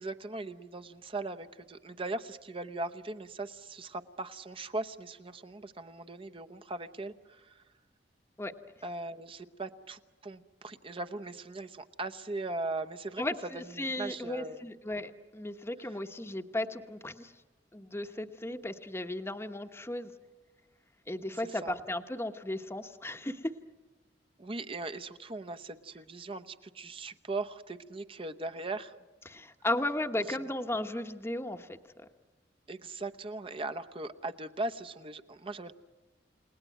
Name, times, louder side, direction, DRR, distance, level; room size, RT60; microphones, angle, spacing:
voice 1, 0.0-7.6 8.8-13.2 13.5-14.6 21.4-21.8 24.4-28.9 30.3-30.4 32.7-35.7, right 2 dB, 30° right, 9 dB, 0.9 m, -39 dB
voice 2, 13.2-17.3 17.7-20.1 21.1-23.5 29.2-32.1, left 1 dB, 15° left, 7 dB, 1.1 m, -35 dB
30.0 x 18.5 x 9.3 m, 1.3 s
head